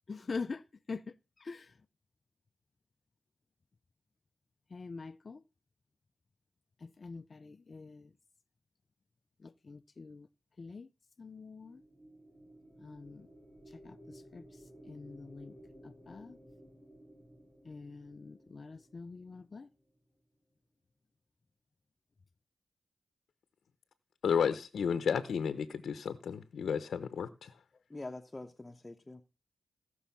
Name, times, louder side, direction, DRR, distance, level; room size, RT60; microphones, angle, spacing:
voice 1, 0.1-1.7 4.7-5.4 6.8-8.1 9.4-10.3 10.6-10.9 11.2-11.8 12.8-13.3 13.7-14.5 14.9-15.6 15.8-16.4 17.6-19.7, left 4 dB, 45° left, 0.5 m, -45 dB
sound 1, 11.4-19.8, right 1 dB, 10° right, 5.9 m, -56 dB
voice 2, 24.2-27.5, left 7 dB, 75° left, 0.8 m, -32 dB
voice 3, 27.9-29.2, left 2 dB, 25° left, 1.0 m, -45 dB
16.0 x 6.2 x 5.7 m
cardioid pair, 60°, 0 cm